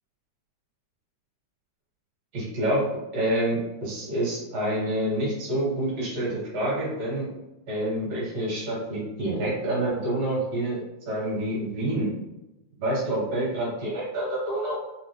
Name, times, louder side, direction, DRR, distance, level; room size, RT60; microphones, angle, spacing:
voice 1, 2.3-2.9 3.1-7.3 7.7-12.1 12.8-14.8, right 1 dB, 65° right, -7 dB, 2.8 m, -27 dB
5.8 x 2.1 x 2.9 m, 0.96 s
omnidirectional pair, 3.4 m